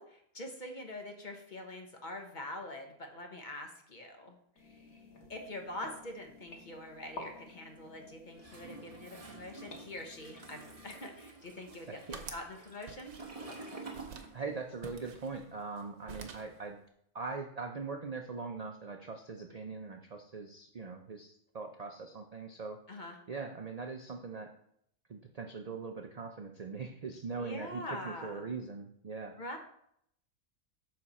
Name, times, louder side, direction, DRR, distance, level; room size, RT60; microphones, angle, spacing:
voice 1, 0.0-5.0 5.3-13.1 22.9-23.2 27.4-28.5 29.4-29.6, left 1 dB, 35° left, 3 dB, 1.1 m, -44 dB
sound 1, 4.5-11.0, left 2 dB, 75° left, 1.9 m, -52 dB
Toilet flush, 8.4-14.8 15.1-16.7, right 3 dB, 25° right, 1.1 m, -50 dB
sound 2, 11.5-12.5 12.9-13.6 13.9-14.3 14.8-16.6, right 6 dB, 90° right, 1.4 m, -48 dB
voice 2, 11.9-12.2 14.3-16.8 17.1-22.8 23.3-24.5 25.1-29.3, right 4 dB, 55° right, 3 dB, 0.4 m, -41 dB
7.6 x 6.1 x 4.2 m, 0.70 s
omnidirectional pair, 1.6 m